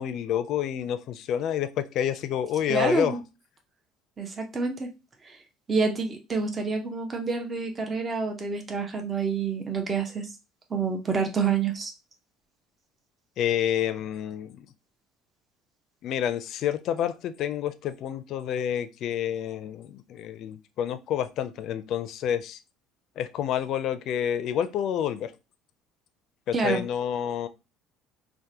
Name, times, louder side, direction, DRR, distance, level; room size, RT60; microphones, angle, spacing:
voice 1, 0.0-3.2 13.4-14.7 16.0-22.6 23.2-25.3 26.5-27.5, left 9 dB, 60° left, 0.4 m, -28 dB
voice 2, 2.7-3.2 4.2-4.9 5.2-5.4 5.7-10.3 10.7-11.9 26.5-26.8, right 4 dB, 25° right, 0.7 m, -28 dB
4.5 x 2.2 x 2.8 m
cardioid pair, 110°, 0 cm